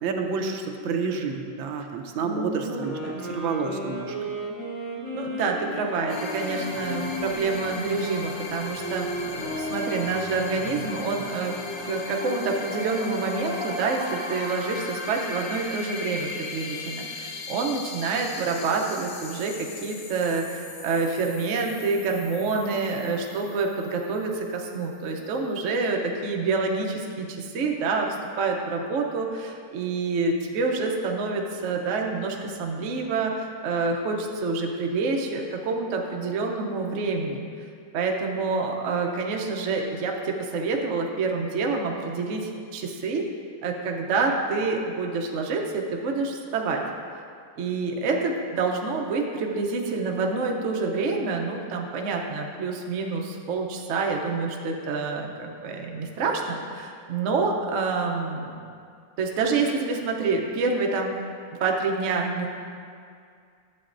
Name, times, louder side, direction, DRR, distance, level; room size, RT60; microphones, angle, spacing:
voice 1, 0.0-4.1, right 5 dB, 80° right, 4 dB, 1.4 m, -29 dB
voice 2, 2.2-3.3 5.1-11.5 11.8-37.5 37.9-43.3 43.6-46.8 47.6-58.6 59.2-61.2 61.6-62.5, right 4 dB, 60° right, 1 dB, 0.8 m, -27 dB
sound 1, 2.7-10.2, equal, 50° left, 1.7 m, -35 dB
sound 2, 6.1-24.6, left 3 dB, 70° left, 1.5 m, -36 dB
11.5 x 7.7 x 2.6 m, 2.3 s
omnidirectional pair, 2.1 m